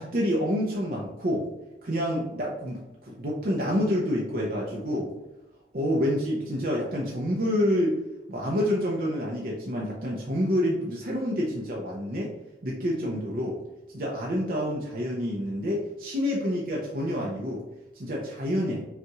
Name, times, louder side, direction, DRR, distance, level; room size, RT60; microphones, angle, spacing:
voice 1, 0.0-1.5 1.8-5.1 5.7-8.0 8.3-12.3 12.6-13.6 13.9-17.6 18.0-18.8, equal, 50° right, -3 dB, 0.6 m, -28 dB
5.6 x 2.4 x 2.9 m, 1.0 s
head